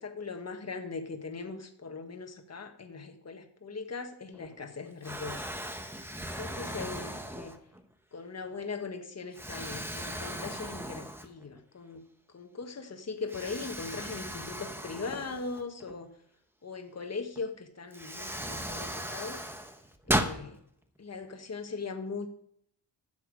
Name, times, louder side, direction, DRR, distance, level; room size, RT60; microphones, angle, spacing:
voice 1, 0.0-5.5 6.4-7.6 8.1-12.0 12.3-16.1 16.6-19.4 20.1-20.6 21.0-22.3, left 4 dB, 35° left, 5 dB, 1.5 m, -40 dB
Explosion, 4.3-4.7 5.0-7.9 8.5-8.6 9.3-11.6 12.0-12.1 13.3-15.9 17.4-17.5 17.9-20.4, right 1 dB, 5° right, 0.9 m, -36 dB
12.5 x 7.3 x 4.9 m, 0.70 s
wide cardioid pair, 110°, 42 cm